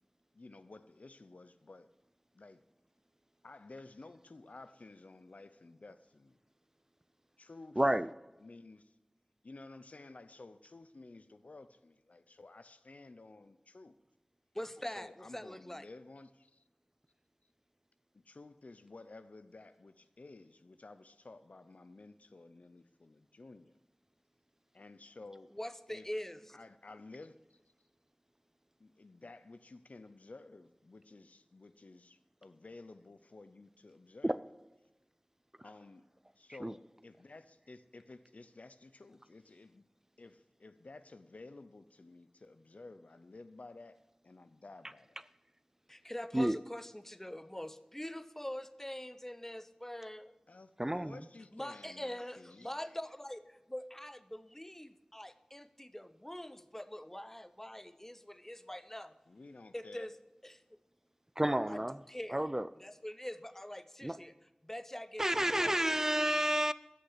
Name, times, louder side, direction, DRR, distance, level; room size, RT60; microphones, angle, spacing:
voice 1, 0.3-1.9 2.3-2.6 3.4-6.4 7.4-7.8 8.4-8.9 9.4-14.0 14.9-16.6 18.1-23.7 24.7-25.5 25.9-26.1 26.5-27.6 28.8-34.4 35.6-36.0 36.4-39.8 40.2-45.2 50.5-52.7 59.3-60.1, left 3 dB, 85° left, 0.6 m, -53 dB
voice 2, 7.8-8.1 34.2-34.4 36.6-36.7 46.3-46.6 50.8-51.2 61.4-62.0 62.3-62.7 64.0-64.2 65.2-66.7, right 1 dB, 20° right, 0.5 m, -30 dB
voice 3, 14.5-15.9 25.5-26.6 45.9-50.3 51.5-59.1 59.7-60.1 60.4-60.5 61.7-61.8 62.1-62.4 62.8-64.3 64.6-65.7, left 1 dB, 15° left, 0.8 m, -44 dB
14.0 x 6.7 x 8.1 m
wide cardioid pair, 40°, 2 cm